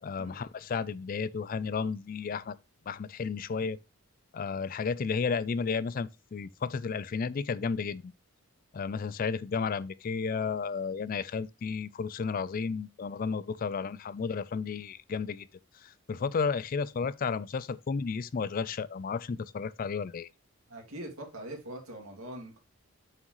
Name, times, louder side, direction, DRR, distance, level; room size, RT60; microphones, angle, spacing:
voice 1, 0.0-2.6 2.9-3.8 4.3-8.1 8.7-15.5 15.8-20.3, left 5 dB, 40° left, 0.3 m, -33 dB
voice 2, 20.7-22.6, right 1 dB, 75° right, 2.4 m, -42 dB
7.4 x 6.4 x 3.1 m
head